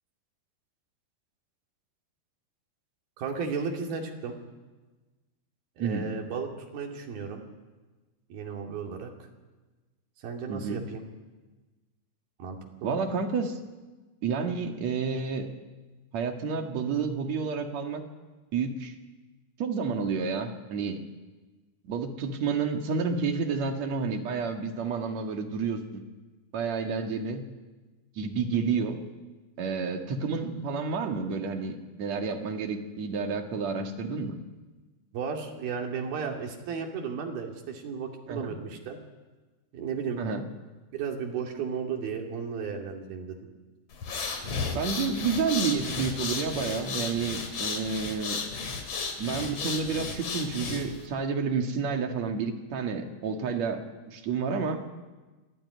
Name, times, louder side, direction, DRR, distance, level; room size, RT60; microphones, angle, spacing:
voice 1, 3.2-4.4 5.8-7.4 8.3-9.1 10.2-11.0 12.4-13.0 35.1-39.0 39.7-40.2 40.9-43.4, right 6 dB, 65° right, 1 dB, 4.3 m, -34 dB
voice 2, 10.5-10.8 12.8-13.6 14.2-15.5 16.1-18.0 18.5-18.9 19.6-21.0 21.8-26.0 26.5-27.4 28.2-29.0 29.6-34.4 38.3-38.5 40.2-40.4 44.7-48.4 49.2-54.8, right 5 dB, 50° right, 4 dB, 2.8 m, -30 dB
sound 1, 43.9-51.1, left 4 dB, 45° left, 3.2 m, -34 dB
24.5 x 15.0 x 9.7 m, 1.2 s
omnidirectional pair, 4.6 m